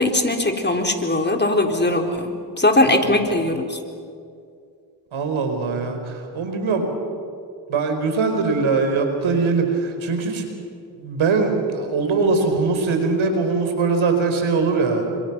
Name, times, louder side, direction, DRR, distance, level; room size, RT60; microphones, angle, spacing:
voice 1, 0.0-3.8, left 1 dB, 20° left, 4 dB, 3.8 m, -20 dB
voice 2, 5.1-6.9 7.7-10.6 11.0-15.1, right 4 dB, 80° right, 5 dB, 4.6 m, -21 dB
29.5 x 26.0 x 6.1 m, 2.3 s
cardioid pair, 60°, 47 cm